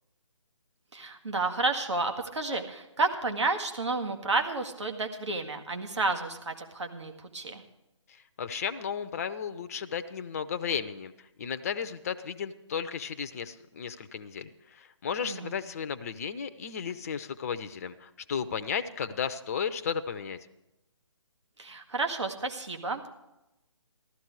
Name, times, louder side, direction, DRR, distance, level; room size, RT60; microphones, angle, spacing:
voice 1, 0.9-7.6 15.2-15.6 21.6-23.1, right 3 dB, 65° right, 4 dB, 1.9 m, -31 dB
voice 2, 8.1-20.4, left 7 dB, 30° left, 11 dB, 0.6 m, -34 dB
14.5 x 13.0 x 4.7 m, 0.92 s
figure-of-eight pair, 145°, 16 cm